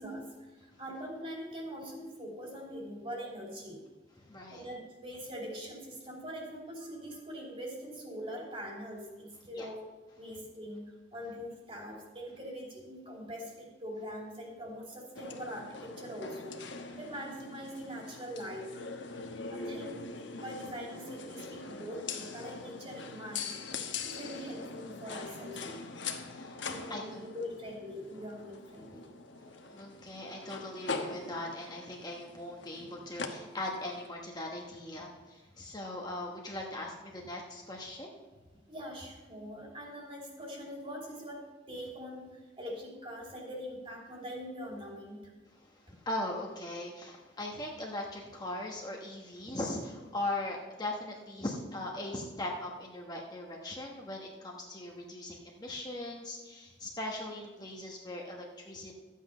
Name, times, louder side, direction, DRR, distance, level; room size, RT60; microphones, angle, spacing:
voice 1, 0.0-3.8 4.5-9.8 10.1-10.8 11.1-16.6 17.0-18.7 19.5-23.5 24.0-25.8 26.7-29.1 38.7-45.3, equal, 30° right, -1 dB, 2.8 m, -43 dB
voice 2, 4.3-4.7 9.5-9.7 19.2-19.5 23.9-24.0 26.2-27.2 29.7-38.1 45.5-58.9, left 1 dB, 20° left, -1 dB, 1.2 m, -40 dB
sound 1, 15.1-34.1, left 4 dB, 75° left, 1.2 m, -42 dB
13.0 x 8.4 x 5.5 m, 1.3 s
head